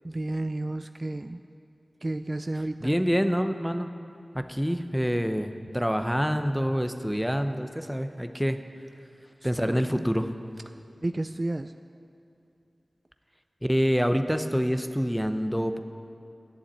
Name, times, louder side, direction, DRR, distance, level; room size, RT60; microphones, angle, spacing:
voice 1, 0.0-1.4 2.0-3.0 9.4-10.1 10.7-11.7, right 2 dB, 40° right, 10 dB, 0.3 m, -32 dB
voice 2, 2.8-3.9 4.3-8.6 9.4-10.3 13.6-15.8, equal, ahead, 7 dB, 0.7 m, -26 dB
11.5 x 7.1 x 9.0 m, 2.6 s
wide cardioid pair, 50°, 0 cm